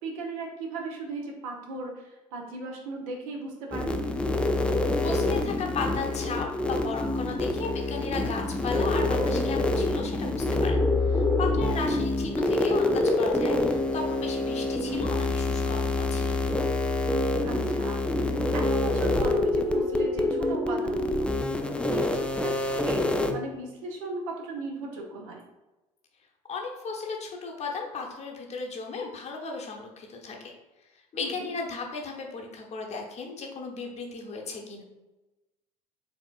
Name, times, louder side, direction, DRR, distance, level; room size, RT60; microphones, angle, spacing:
voice 1, 0.0-2.0 2.3-4.0 11.8-12.1 17.4-18.0 18.5-21.3 21.9-25.4 31.2-31.5, right 2 dB, 65° right, 0 dB, 0.9 m, -37 dB
sound 1, 3.7-23.3, left 2 dB, 5° left, 0.4 m, -26 dB
voice 2, 4.7-16.4 26.5-30.5 30.9-34.8, left 4 dB, 35° left, 1 dB, 0.9 m, -35 dB
4.6 x 3.5 x 2.4 m, 1.1 s
figure-of-eight pair, 60°, 18 cm